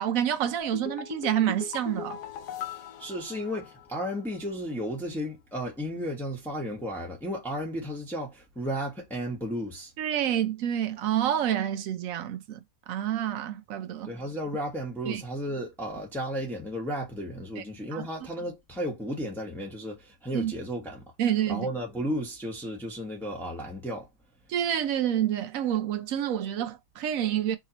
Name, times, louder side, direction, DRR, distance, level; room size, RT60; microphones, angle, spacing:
voice 1, 0.0-2.2 10.0-14.1 15.1-15.2 17.6-17.7 17.9-18.0 20.3-20.5 21.2-21.7 24.5-27.6, right 10 dB, 70° right, 0.9 m, -28 dB
sound 1, 0.6-4.0 4.3-4.4, left 9 dB, 85° left, 1.3 m, -39 dB
voice 2, 3.0-9.9 14.0-21.0 21.5-24.1, equal, ahead, 1.0 m, -34 dB
4.7 x 2.9 x 2.9 m
omnidirectional pair, 1.7 m